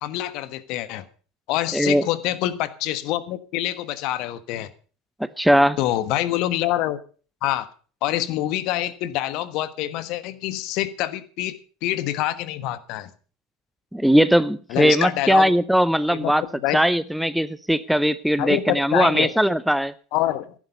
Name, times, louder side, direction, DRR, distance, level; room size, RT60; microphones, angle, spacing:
voice 1, 0.0-1.1 1.5-4.7 5.8-7.0 7.4-7.7 8.0-11.6 11.8-13.1 14.7-15.5 16.1-16.8 18.4-19.3 20.1-20.5, left 14 dB, 55° left, 1.3 m, -26 dB
voice 2, 1.7-2.0 5.2-5.8 13.9-16.4 16.7-19.9, equal, ahead, 0.6 m, -19 dB
15.0 x 11.0 x 5.3 m
figure-of-eight pair, 75°, 0 cm